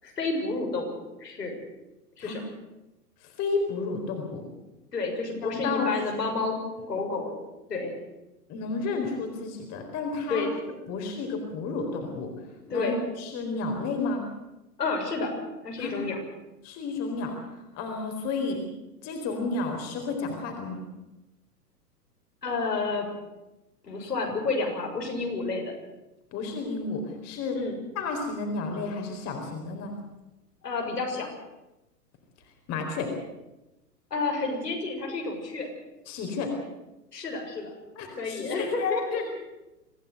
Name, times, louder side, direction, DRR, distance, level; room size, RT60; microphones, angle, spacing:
voice 1, 0.0-1.6 2.2-2.4 4.9-6.5 6.9-7.3 7.7-7.9 10.3-10.5 12.7-13.0 14.8-15.3 15.6-16.2 22.4-23.1 23.8-25.7 27.5-27.7 30.6-31.3 34.1-35.7 37.1-37.7 38.1-39.0, left 3 dB, 75° left, 1 dB, 6.9 m, -30 dB
voice 2, 3.4-4.4 5.4-5.9 6.8-6.9 8.5-10.5 10.9-12.3 12.7-14.2 15.8-15.9 16.6-17.3 17.7-18.6 19.0-20.8 24.3-24.4 26.3-27.6 27.9-29.9 32.7-33.1 36.1-36.5 38.0-39.3, left 4 dB, 30° left, 3 dB, 4.3 m, -31 dB
25.5 x 16.0 x 8.0 m, 0.99 s
figure-of-eight pair, 110°, 48 cm